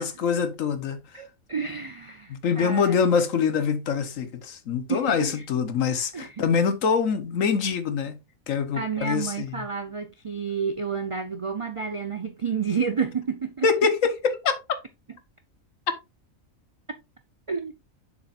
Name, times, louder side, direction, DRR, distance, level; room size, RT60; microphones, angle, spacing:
voice 1, 0.0-1.0 2.3-8.2 8.5-9.7 13.6-14.6, left 6 dB, 70° left, 1.4 m, -24 dB
voice 2, 1.1-3.0 4.9-5.5 6.1-6.4 8.7-13.7 17.5-17.7, right 6 dB, 45° right, 0.4 m, -30 dB
7.0 x 6.9 x 2.4 m
omnidirectional pair, 1.4 m